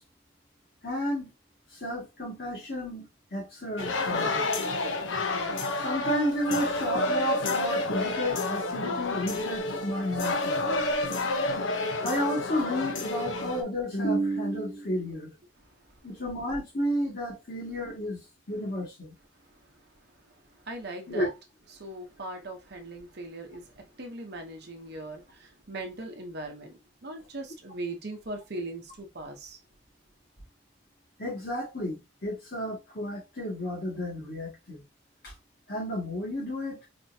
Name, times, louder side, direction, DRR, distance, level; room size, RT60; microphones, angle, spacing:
voice 1, 0.8-1.3 1.8-4.5 5.8-10.6 12.0-15.3 16.0-18.2 18.5-19.1 21.1-21.3 31.2-34.8 35.2-35.3 35.7-36.8, equal, 50° left, 2.1 m, -32 dB
sound 1, 3.8-13.6, left 2 dB, 75° left, 0.8 m, -29 dB
voice 2, 20.5-21.3 21.7-29.6, right 2 dB, 55° right, 0.9 m, -40 dB
4.3 x 2.9 x 2.7 m
head